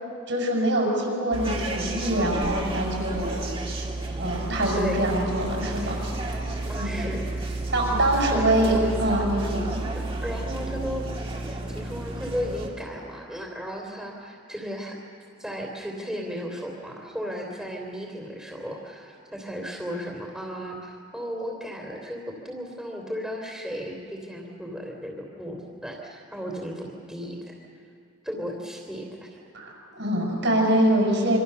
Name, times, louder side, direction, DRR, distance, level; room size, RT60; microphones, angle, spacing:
voice 1, 0.3-3.5 4.2-6.0 6.8-7.2 7.7-9.8 29.5-31.4, right 1 dB, 60° right, 0 dB, 6.8 m, -24 dB
sound 1, 1.3-12.7, right 2 dB, 25° right, 2.8 m, -31 dB
voice 2, 6.7-7.3 8.3-8.9 9.9-11.1 11.3-15.0 15.4-27.6 28.2-29.4, equal, 5° right, -2 dB, 3.2 m, -35 dB
26.5 x 26.0 x 6.9 m, 2.3 s
head